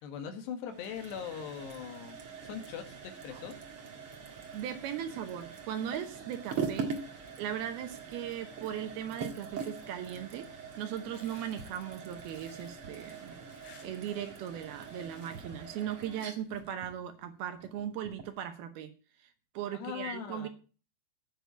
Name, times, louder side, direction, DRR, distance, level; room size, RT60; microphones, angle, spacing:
voice 1, 0.0-3.6 19.7-20.5, left 8 dB, 75° left, 6 dB, 3.5 m, -41 dB
sound 1, 0.7-18.4, right 5 dB, 55° right, 1.6 m, -43 dB
voice 2, 4.5-6.9 7.4-13.4 13.8-20.5, right 10 dB, 70° right, 7 dB, 2.6 m, -38 dB
sound 2, 11.1-14.5 14.8-15.6 16.3-16.7, left 5 dB, 55° left, 4.0 m, -59 dB
9.5 x 6.4 x 8.2 m, 0.37 s
omnidirectional pair, 5.1 m